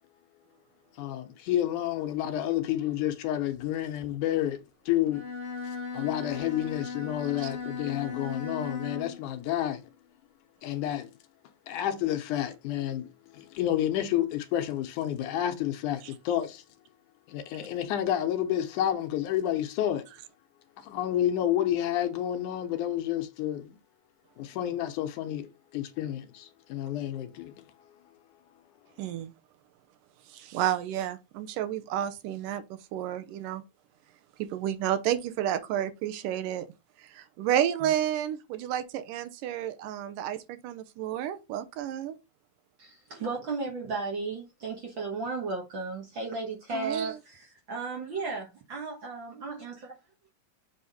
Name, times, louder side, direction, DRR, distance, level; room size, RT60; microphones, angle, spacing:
voice 1, 1.0-5.2 5.9-9.8 10.6-11.1 11.7-13.1 13.3-16.6 17.3-20.1 20.8-23.8 24.4-27.5, left 12 dB, 75° left, 2.1 m, -30 dB
Bowed string instrument, 5.1-9.2, left 4 dB, 45° left, 0.9 m, -37 dB
voice 2, 29.0-29.3 30.3-32.6 32.9-33.6 34.4-36.7 37.0-42.2 46.7-47.2, right 11 dB, 85° right, 2.3 m, -31 dB
voice 3, 42.8-49.7, right 3 dB, 55° right, 1.3 m, -35 dB
7.6 x 3.6 x 4.1 m
omnidirectional pair, 3.9 m